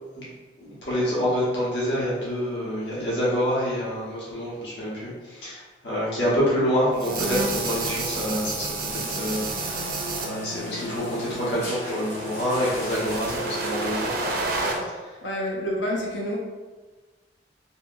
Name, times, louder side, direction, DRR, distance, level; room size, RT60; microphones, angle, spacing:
voice 1, 0.6-14.1 14.8-15.2, equal, 70° left, -8 dB, 1.0 m, -27 dB
sound 1, 7.0-10.3 11.4-14.7, right 3 dB, 55° right, 0.4 m, -30 dB
sound 2, 8.9-14.8, equal, 40° left, 1.0 m, -36 dB
voice 2, 15.2-16.4, equal, 90° left, -2 dB, 0.6 m, -28 dB
2.7 x 2.6 x 2.5 m, 1.3 s
head